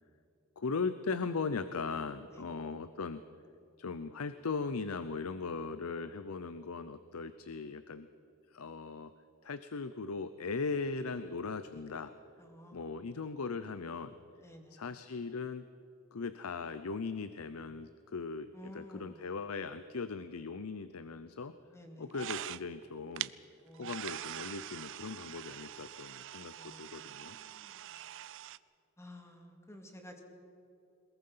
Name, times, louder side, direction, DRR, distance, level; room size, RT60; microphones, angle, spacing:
voice 1, 0.6-3.2 3.8-8.1 8.5-9.1 9.4-12.1 12.7-14.1 14.7-15.6 16.1-21.5 22.0-23.3 23.8-27.4, left 4 dB, 70° left, 12 dB, 0.7 m, -38 dB
voice 2, 12.4-12.9 14.4-14.8 18.5-19.2 21.7-22.1 23.6-24.0 26.6-27.8 29.0-30.2, left 1 dB, 15° left, 3 dB, 2.3 m, -53 dB
sound 1, 22.1-22.8 23.2-23.3 23.7-28.6, right 12 dB, 60° right, 0.5 m, -43 dB
22.5 x 21.0 x 5.7 m, 2.8 s
head